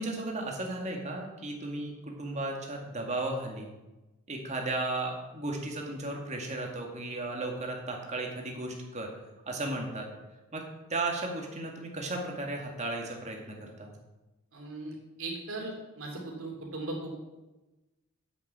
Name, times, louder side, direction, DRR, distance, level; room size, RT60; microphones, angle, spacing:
voice 1, 0.0-3.7 4.3-9.1 9.5-10.1 10.5-10.6 10.9-13.9, right 2 dB, 30° right, 1 dB, 2.1 m, -35 dB
voice 2, 14.5-17.2, right 2 dB, 65° right, 0 dB, 2.9 m, -38 dB
8.3 x 6.9 x 8.2 m, 1.1 s
head